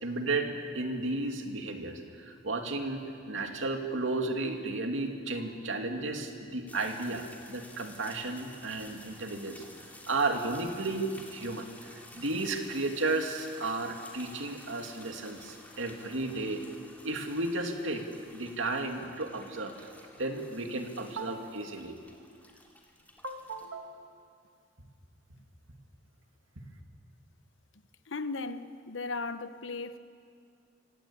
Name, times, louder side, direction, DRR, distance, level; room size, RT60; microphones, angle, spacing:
voice 1, 0.0-9.6 10.1-16.6 17.0-18.0 18.3-19.9 20.2-21.9 23.2-24.0 26.6-26.7, right 2 dB, 85° right, 2.4 m, -33 dB
sound 1, 6.7-23.7, left 1 dB, 10° left, 2.9 m, -53 dB
voice 2, 28.1-30.0, left 3 dB, 75° left, 1.0 m, -36 dB
26.5 x 17.0 x 8.7 m
head